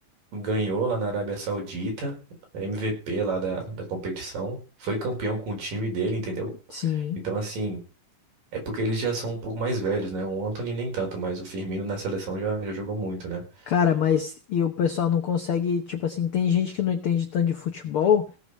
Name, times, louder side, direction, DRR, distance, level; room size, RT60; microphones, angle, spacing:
voice 1, 0.3-2.1 2.5-6.5 6.8-6.9 7.2-7.8 8.5-13.7, right 2 dB, 80° right, 2 dB, 6.5 m, -29 dB
voice 2, 6.7-7.2 13.7-18.2, left 8 dB, 75° left, 6 dB, 1.2 m, -24 dB
17.5 x 6.7 x 6.5 m, 0.35 s
omnidirectional pair, 3.8 m